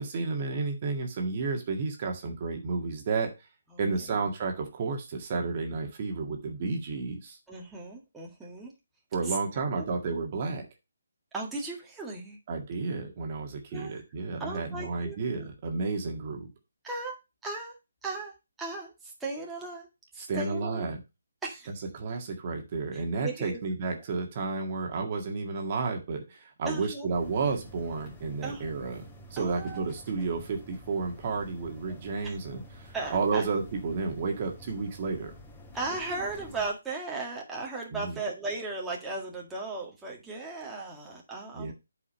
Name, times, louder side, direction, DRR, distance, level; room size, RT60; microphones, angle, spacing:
voice 1, 0.0-3.3 3.8-7.4 9.1-10.7 12.5-16.5 20.2-21.0 21.9-35.4 37.9-38.2 41.5-41.7, right 4 dB, 35° right, 3 dB, 1.8 m, -32 dB
voice 2, 7.5-8.7 9.3-9.4 9.8-9.9 11.3-12.4 13.7-14.0 14.4-15.5 16.8-17.2 17.4-17.7 18.0-18.3 18.6-19.9 20.1-20.9 21.4-21.7 22.9-23.6 26.7-27.1 28.4-28.8 29.4-29.9 32.2-32.4 32.9-33.4 35.7-41.7, right 3 dB, 5° right, -3 dB, 1.9 m, -36 dB
sound 1, 27.1-36.7, left 1 dB, 15° left, 2.7 m, -49 dB
8.4 x 5.0 x 5.3 m, 0.25 s
figure-of-eight pair, 150°, 0 cm